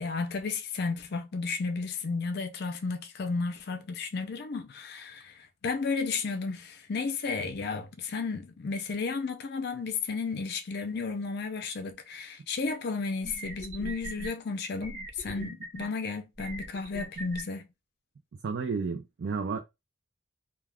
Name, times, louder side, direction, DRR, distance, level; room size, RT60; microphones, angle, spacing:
voice 1, 0.0-17.7, left 4 dB, 55° left, 0.5 m, -33 dB
sound 1, 12.7-12.8 13.2-14.3 14.8-15.9 16.4-17.4, right 2 dB, 40° right, 0.8 m, -40 dB
voice 2, 18.4-19.6, right 5 dB, 60° right, 0.4 m, -31 dB
2.3 x 2.2 x 3.3 m
head